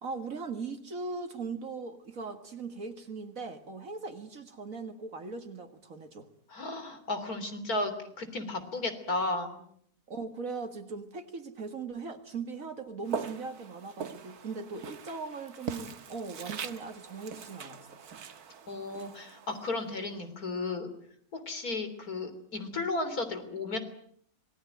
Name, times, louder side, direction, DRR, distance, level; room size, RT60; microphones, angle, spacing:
voice 1, 0.0-6.3 10.1-18.0, right 4 dB, 65° right, 7 dB, 2.2 m, -39 dB
voice 2, 6.5-7.9 8.2-9.6 18.7-20.9 21.3-23.8, left 2 dB, 80° left, 9 dB, 4.0 m, -34 dB
Walk footsteps, 13.0-20.2, right 6 dB, 85° right, 1.8 m, -42 dB
26.5 x 20.0 x 9.1 m, 0.65 s
omnidirectional pair, 1.6 m